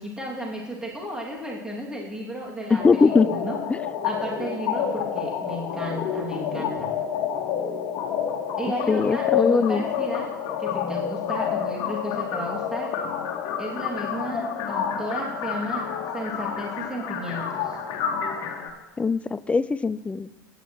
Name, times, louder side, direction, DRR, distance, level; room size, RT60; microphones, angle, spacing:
voice 1, 0.0-3.6 4.0-6.9 8.5-10.3 10.6-12.9 13.6-15.9 16.1-17.8, equal, 5° right, -3 dB, 2.4 m, -33 dB
voice 2, 2.7-3.3 3.7-3.8 8.9-9.8 19.0-20.3, left 4 dB, 10° left, 17 dB, 0.3 m, -21 dB
sound 1, 2.8-18.7, left 7 dB, 50° left, 1.6 m, -29 dB
15.5 x 9.6 x 3.1 m, 1.0 s
hypercardioid pair, 80°, 11 cm